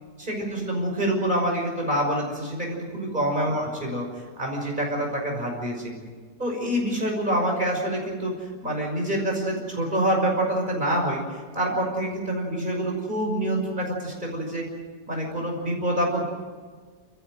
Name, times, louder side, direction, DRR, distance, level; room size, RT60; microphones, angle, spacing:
voice 1, 0.2-4.1 4.4-5.9 6.4-11.2 11.5-14.7 15.1-16.3, right 1 dB, 25° right, 0 dB, 6.2 m, -26 dB
29.5 x 15.0 x 7.8 m, 1.5 s
omnidirectional pair, 1.8 m